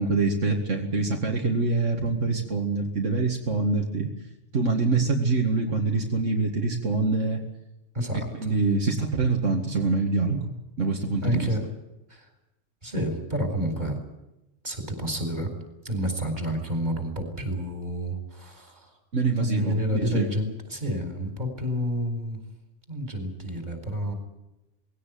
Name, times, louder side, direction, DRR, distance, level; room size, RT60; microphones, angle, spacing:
voice 1, 0.0-4.1 4.5-7.4 8.4-10.5 10.8-11.5 19.1-20.3, right 3 dB, 75° right, 1 dB, 2.5 m, -25 dB
voice 2, 7.9-8.3 11.2-11.7 12.1-12.3 12.8-14.0 14.6-15.5 15.8-18.9 19.4-22.4 22.9-24.1, equal, 35° right, 6 dB, 4.7 m, -29 dB
20.5 x 17.0 x 9.4 m, 0.94 s
omnidirectional pair, 1.3 m